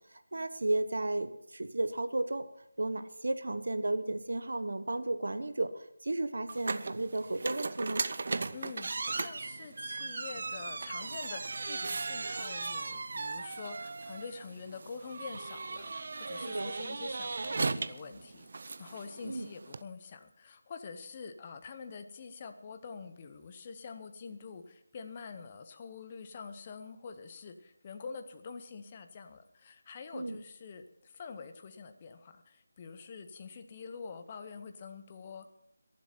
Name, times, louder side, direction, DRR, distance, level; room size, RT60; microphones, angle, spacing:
voice 1, 0.1-2.4 2.8-8.1 16.3-16.7 19.2-19.5 30.1-30.4, right 2 dB, 75° right, 10 dB, 1.3 m, -34 dB
sound 1, 6.5-19.8, right 3 dB, 40° right, 0.5 m, -37 dB
voice 2, 8.5-35.5, left 5 dB, 20° left, 8 dB, 0.8 m, -46 dB
22.5 x 7.6 x 5.8 m, 0.75 s
figure-of-eight pair, 175°, 0 cm